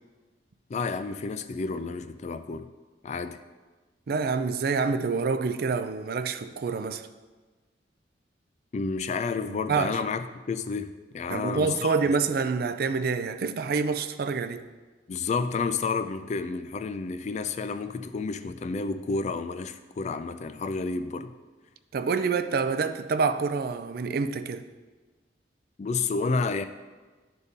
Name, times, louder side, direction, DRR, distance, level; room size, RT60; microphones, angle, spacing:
voice 1, 0.7-2.7 3.0-3.4 8.7-12.0 15.1-21.3 25.8-26.6, left 4 dB, 40° left, 0.3 m, -30 dB
voice 2, 4.1-7.1 9.5-10.0 11.3-14.7 21.9-24.7, right 5 dB, 55° right, 0.4 m, -27 dB
11.5 x 4.0 x 3.6 m
head